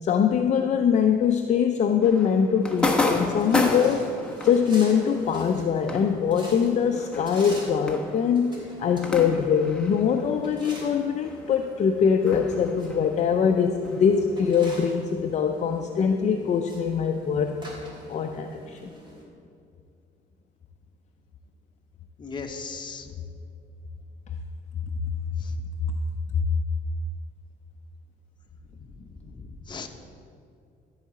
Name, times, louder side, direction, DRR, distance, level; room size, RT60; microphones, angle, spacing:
voice 1, 0.0-4.1 4.4-17.5 18.1-18.8 26.3-26.4, left 7 dB, 45° left, 4 dB, 0.6 m, -23 dB
sound 1, 2.0-11.0 11.2-14.8, left 2 dB, 5° left, 1.1 m, -32 dB
sound 2, 2.6-19.2, equal, 25° right, 3.0 m, -45 dB
voice 2, 22.2-23.2 25.4-25.5 28.8-29.9, left 4 dB, 25° left, 4 dB, 1.1 m, -38 dB
13.5 x 4.8 x 7.5 m, 2.4 s
cardioid pair, 110°, 17 cm